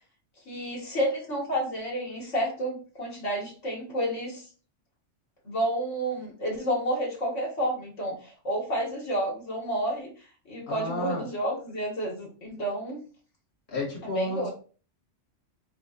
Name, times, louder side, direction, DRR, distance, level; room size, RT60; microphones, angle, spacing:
voice 1, 0.5-4.5 5.5-10.1 10.5-13.0 14.0-14.5, right 1 dB, 80° left, -2 dB, 1.8 m, -30 dB
voice 2, 10.7-11.2 13.7-14.5, left 1 dB, 60° left, -3 dB, 1.6 m, -32 dB
5.0 x 2.9 x 2.8 m, 0.38 s
omnidirectional pair, 1.2 m